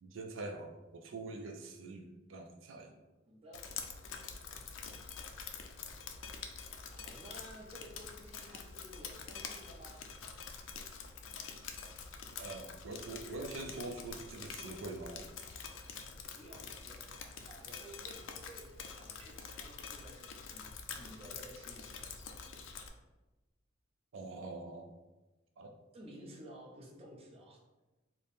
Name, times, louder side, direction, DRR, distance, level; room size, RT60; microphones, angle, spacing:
voice 1, 0.0-3.0 12.4-15.3 24.1-24.9 25.6-25.8, right 2 dB, 85° right, 4 dB, 0.4 m, -44 dB
voice 2, 3.3-3.7 6.9-10.1 16.3-17.1 17.5-20.6 20.9-22.3 25.9-27.6, right 1 dB, 30° right, -1 dB, 0.7 m, -53 dB
Drip, 3.5-22.9, left 6 dB, 90° left, 0.4 m, -46 dB
3.4 x 2.0 x 4.1 m, 1.1 s
head